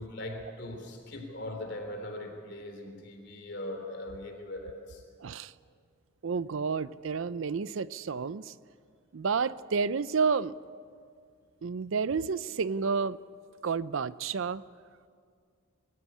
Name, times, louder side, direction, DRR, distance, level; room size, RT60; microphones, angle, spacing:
voice 1, 0.0-5.0, left 1 dB, 55° left, 4 dB, 3.6 m, -40 dB
voice 2, 5.2-5.5 6.2-8.5 9.1-10.5 11.6-13.2 13.6-14.6, right 5 dB, 65° right, 17 dB, 0.5 m, -30 dB
23.5 x 14.5 x 10.0 m, 2.1 s
head